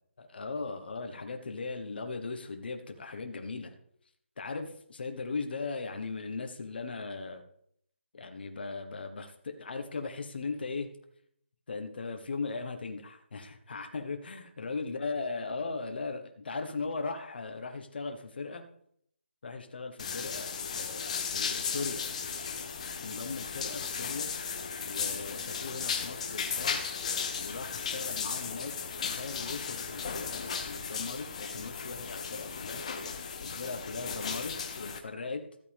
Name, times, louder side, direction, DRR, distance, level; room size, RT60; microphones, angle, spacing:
voice 1, 0.2-3.7 4.4-7.4 8.1-10.9 11.7-18.6 19.4-20.5 20.7-22.0 23.0-24.3 24.9-26.8 27.4-28.7 29.0-32.8 33.4-35.4, left 4 dB, 50° left, 6 dB, 1.3 m, -38 dB
sound 1, 20.0-35.0, left 6 dB, 30° left, 0.8 m, -36 dB
13.5 x 8.2 x 3.6 m, 0.68 s
figure-of-eight pair, 165°, 7 cm